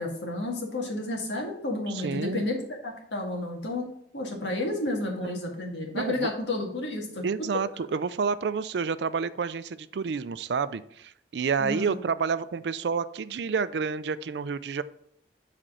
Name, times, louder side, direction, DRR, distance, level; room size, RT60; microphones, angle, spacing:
voice 1, 0.0-2.6 3.1-3.9 4.1-7.2 11.6-12.0, left 2 dB, 80° left, 0 dB, 1.9 m, -31 dB
voice 2, 1.9-2.5 5.2-5.4 5.9-6.3 7.2-14.8, right 5 dB, 70° right, 15 dB, 0.4 m, -29 dB
7.6 x 4.3 x 4.9 m, 0.69 s
head